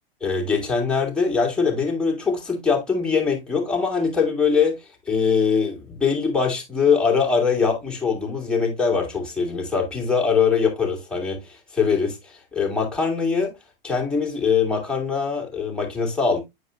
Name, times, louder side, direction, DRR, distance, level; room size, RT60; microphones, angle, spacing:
voice 1, 0.2-4.8 5.1-13.5 13.8-16.4, left 5 dB, 5° left, 2.8 m, -22 dB
8.4 x 4.6 x 2.6 m
hypercardioid pair, 105°, 30 cm